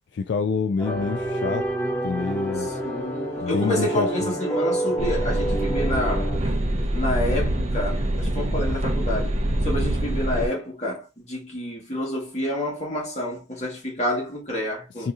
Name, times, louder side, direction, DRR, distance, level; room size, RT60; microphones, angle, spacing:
voice 1, 0.1-1.7 2.0-2.7 3.4-4.3 15.0-15.1, left 5 dB, 70° left, 0.3 m, -27 dB
sound 1, 0.8-6.4, right 1 dB, 15° left, 1.9 m, -28 dB
voice 2, 2.6-6.3 6.9-15.1, left 1 dB, 40° left, 1.5 m, -29 dB
sound 2, 5.0-10.5, right 1 dB, 35° right, 0.6 m, -25 dB
3.6 x 2.8 x 2.4 m
head